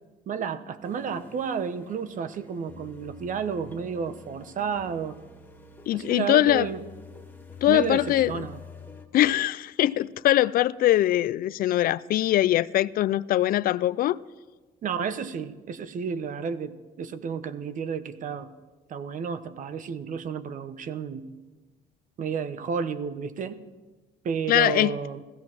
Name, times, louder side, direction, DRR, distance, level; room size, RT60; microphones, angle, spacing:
voice 1, 0.3-5.2 5.9-6.8 7.7-8.6 14.8-18.5 18.9-21.3 22.2-23.6 24.2-25.2, right 6 dB, 50° right, 1.0 m, -31 dB
sound 1, 0.8-9.1, left 4 dB, 10° left, 1.9 m, -47 dB
voice 2, 5.9-6.7 7.6-8.4 9.1-14.2 24.5-24.9, left 13 dB, 60° left, 0.4 m, -22 dB
16.0 x 14.5 x 6.1 m
cardioid pair, 110°, 17 cm